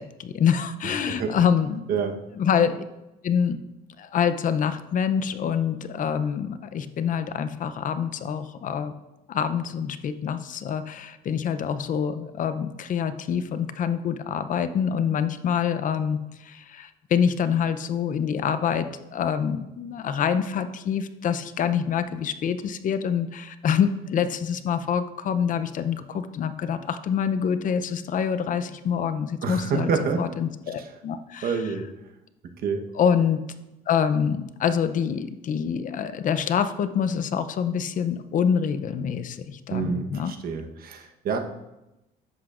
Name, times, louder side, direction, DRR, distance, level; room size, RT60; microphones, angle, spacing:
voice 1, 0.0-1.9 2.4-2.8 3.2-3.6 4.0-8.9 9.3-29.9 30.2-31.5 33.0-33.4 33.9-40.3, left 7 dB, 50° left, 11 dB, 0.6 m, -26 dB
voice 2, 0.8-1.3 1.9-2.2 29.4-30.2 30.8-30.9 31.4-31.9 32.6-32.9 39.7-41.4, right 5 dB, 60° right, 5 dB, 1.1 m, -28 dB
11.0 x 7.9 x 2.5 m, 0.94 s
cardioid pair, 110°, 17 cm